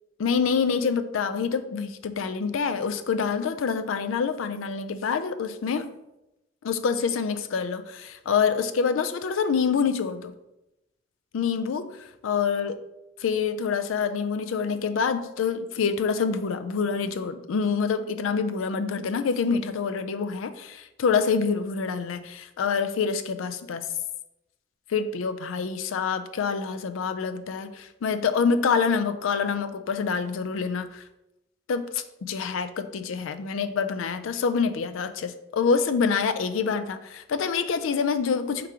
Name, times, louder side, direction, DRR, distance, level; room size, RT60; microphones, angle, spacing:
voice 1, 0.2-5.9 6.6-10.3 11.3-12.0 12.2-12.8 13.2-23.9 24.9-31.0 31.7-38.7, left 5 dB, 85° left, 11 dB, 0.4 m, -26 dB
3.6 x 2.9 x 4.7 m, 0.90 s
head